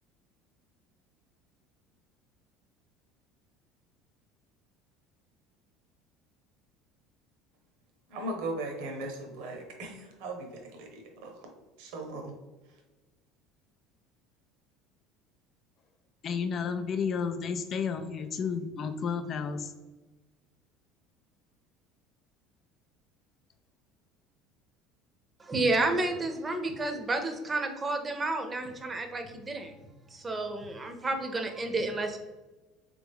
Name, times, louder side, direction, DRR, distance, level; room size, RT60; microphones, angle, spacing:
voice 1, 8.1-11.4 11.8-12.3, right 2 dB, 75° right, 3 dB, 0.9 m, -38 dB
voice 2, 16.2-19.7, left 6 dB, 45° left, 8 dB, 0.4 m, -32 dB
voice 3, 25.4-29.7 30.1-32.2, right 2 dB, 25° right, 6 dB, 0.7 m, -31 dB
3.5 x 3.5 x 3.5 m, 1.2 s
hypercardioid pair, 85°, 0 cm